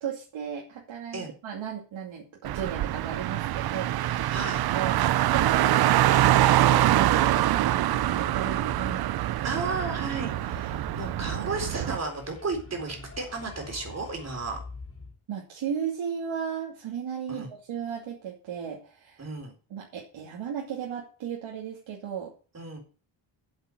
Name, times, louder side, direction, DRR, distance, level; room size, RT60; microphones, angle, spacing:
voice 1, 0.0-4.3 4.7-5.0 5.3-9.4 15.3-19.3 19.7-22.3, right 8 dB, 70° right, -2 dB, 2.7 m, -35 dB
Car, 2.4-12.0, right 13 dB, 50° right, 0.5 m, -24 dB
voice 2, 4.3-4.6 9.4-14.6 17.3-17.5 19.2-19.5 22.5-22.8, right 3 dB, 30° right, 3 dB, 4.0 m, -33 dB
sound 1, 6.7-9.1 9.4-11.4 11.7-15.2, left 3 dB, 30° left, 3.9 m, -45 dB
8.2 x 8.0 x 7.7 m, 0.38 s
wide cardioid pair, 155°, 49 cm